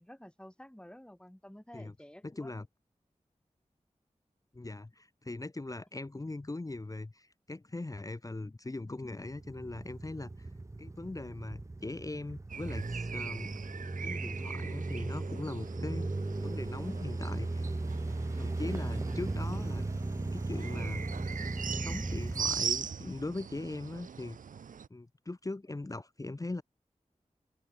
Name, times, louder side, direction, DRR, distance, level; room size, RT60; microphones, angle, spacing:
voice 1, 0.0-2.5, equal, 5° left, 2.6 m, -51 dB
voice 2, 2.2-2.7 4.5-10.5 10.8-13.6 14.0-16.1 16.4-19.9 20.3-21.1 21.7-24.4 24.9-26.6, left 2 dB, 25° left, 0.7 m, -40 dB
sound 1, 9.1-23.4, right 2 dB, 20° right, 0.6 m, -37 dB
sound 2, 12.5-24.9, right 7 dB, 85° right, 0.6 m, -41 dB
open air
cardioid pair, 40°, 13 cm